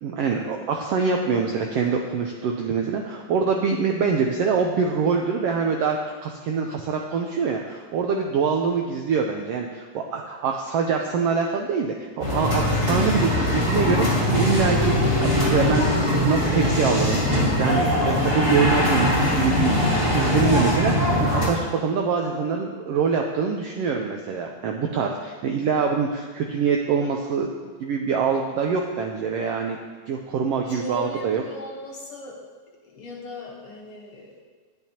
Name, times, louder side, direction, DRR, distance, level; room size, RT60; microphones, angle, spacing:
voice 1, 0.0-15.9 16.2-17.2 17.6-29.8 30.1-31.4, right 5 dB, 85° right, 2 dB, 1.3 m, -24 dB
sound 1, 12.2-21.4, left 1 dB, 10° right, 3.0 m, -21 dB
voice 2, 30.6-32.4 32.8-34.4, left 1 dB, 60° left, -2 dB, 1.8 m, -38 dB
10.5 x 10.0 x 2.9 m, 1.4 s
omnidirectional pair, 3.4 m